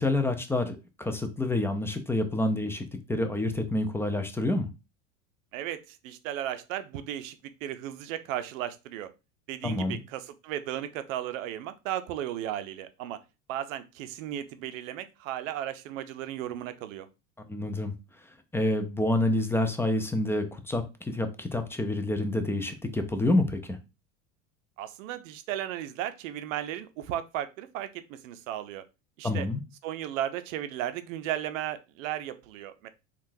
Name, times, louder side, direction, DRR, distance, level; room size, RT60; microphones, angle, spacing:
voice 1, 0.0-4.7 9.6-10.0 17.5-17.9 18.5-23.8 29.2-29.6, left 2 dB, 5° left, 0.4 m, -28 dB
voice 2, 5.5-9.1 9.5-13.2 13.5-17.1 24.8-28.8 29.2-29.5 29.8-32.9, right 12 dB, 80° right, 0.6 m, -35 dB
3.7 x 2.3 x 2.6 m
hypercardioid pair, 90°, 39 cm